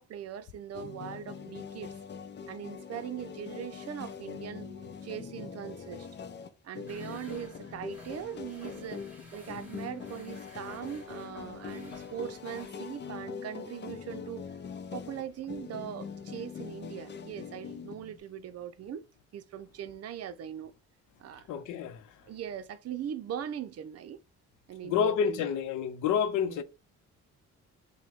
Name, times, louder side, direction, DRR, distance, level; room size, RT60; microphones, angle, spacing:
voice 1, 0.0-1.9 2.5-4.7 5.0-6.1 6.6-9.0 9.3-14.4 14.9-19.1 19.3-20.7 21.2-21.6 22.2-24.2 24.7-25.5 26.3-26.6, right 9 dB, 55° right, 0.6 m, -40 dB
sound 1, 0.7-18.2, left 6 dB, 35° left, 0.6 m, -43 dB
sound 2, 6.9-12.7, equal, 5° right, 2.5 m, -53 dB
voice 2, 21.5-22.0 24.8-26.6, left 7 dB, 90° left, 0.6 m, -28 dB
4.8 x 2.2 x 3.5 m
cardioid pair, 90°, 30 cm